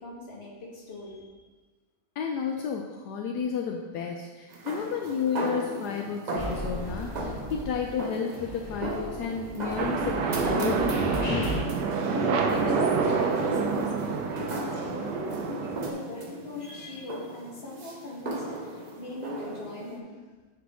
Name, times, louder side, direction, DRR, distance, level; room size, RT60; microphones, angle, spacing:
voice 1, 0.0-1.4 12.0-20.2, left 2 dB, 40° left, -3 dB, 1.6 m, -39 dB
voice 2, 2.2-11.6, left 6 dB, 75° left, 2 dB, 1.1 m, -32 dB
sound 1, 4.5-20.0, right 2 dB, 55° right, 0.5 m, -38 dB
sound 2, 6.4-8.0 8.3-11.6, equal, 20° left, 2.2 m, -36 dB
sound 3, 9.8-15.9, right 5 dB, 80° right, 1.4 m, -27 dB
9.6 x 4.7 x 3.6 m, 1.2 s
omnidirectional pair, 1.8 m